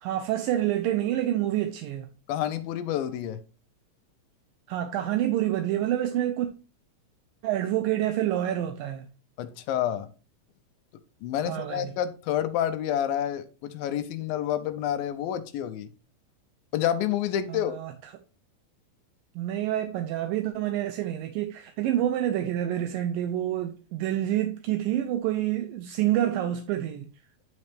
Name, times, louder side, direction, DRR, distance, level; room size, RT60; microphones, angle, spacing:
voice 1, 0.0-2.1 4.7-6.5 7.4-9.1 11.4-11.9 17.5-18.1 19.4-27.1, right 12 dB, 80° right, 2.3 m, -27 dB
voice 2, 2.3-3.4 9.4-10.1 11.2-15.9 16.7-17.8, left 10 dB, 85° left, 2.5 m, -29 dB
10.5 x 4.2 x 3.4 m
omnidirectional pair, 4.1 m